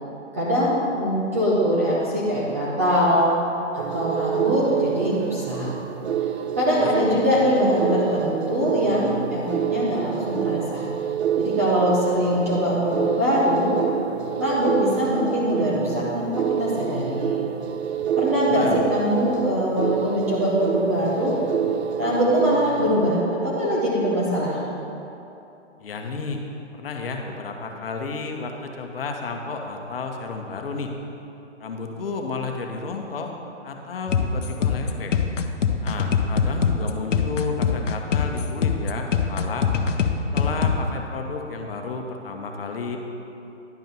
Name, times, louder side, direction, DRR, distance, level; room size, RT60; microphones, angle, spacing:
voice 1, 0.3-3.3 3.7-5.8 6.6-10.8 11.4-13.8 14.4-17.4 18.2-21.4 22.0-24.6, equal, 15° right, -7 dB, 0.5 m, -22 dB
sound 1, 3.8-23.2, right 9 dB, 60° right, 0.6 m, -28 dB
voice 2, 6.7-7.2 18.4-18.9 25.8-26.4 26.8-31.0 31.6-33.3 33.6-35.1 35.8-39.7 40.3-43.0, left 4 dB, 50° left, 3 dB, 1.1 m, -32 dB
sound 2, 34.1-40.8, left 6 dB, 75° left, 0.8 m, -23 dB
10.5 x 5.2 x 5.3 m, 2.9 s
hypercardioid pair, 150°, 37 cm